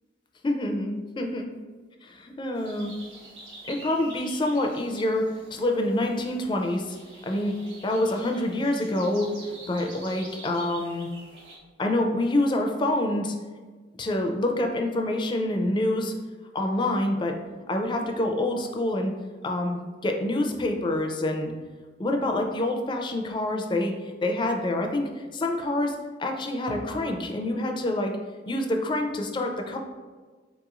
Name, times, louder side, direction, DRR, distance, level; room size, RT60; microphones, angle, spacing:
voice 1, 0.4-1.5 2.0-2.9 3.7-7.0 7.2-7.5 7.8-9.3 9.7-11.1 11.8-13.3 14.0-16.1 16.5-17.4 17.7-19.1 19.4-21.5 22.0-23.9 24.2-28.2 28.5-29.8, left 1 dB, 25° left, 3 dB, 0.4 m, -26 dB
sound 1, 2.5-11.6, right 2 dB, 85° right, 1.3 m, -47 dB
4.2 x 2.9 x 2.4 m, 1.4 s
head